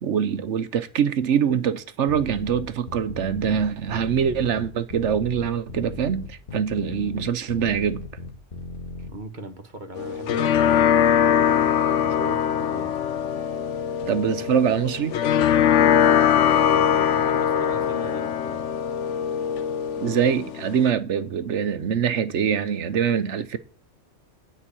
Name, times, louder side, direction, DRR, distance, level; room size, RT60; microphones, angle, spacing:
voice 1, 0.0-8.0 14.1-15.2 20.0-23.6, right 8 dB, 70° right, 1.1 m, -24 dB
sound 1, 2.1-9.1, left 2 dB, 45° left, 1.7 m, -36 dB
voice 2, 9.1-13.0 16.3-18.7, right 1 dB, 40° right, 1.5 m, -39 dB
sound 2, 10.0-20.9, left 9 dB, 75° left, 1.0 m, -22 dB
12.5 x 5.4 x 8.8 m
omnidirectional pair, 1.3 m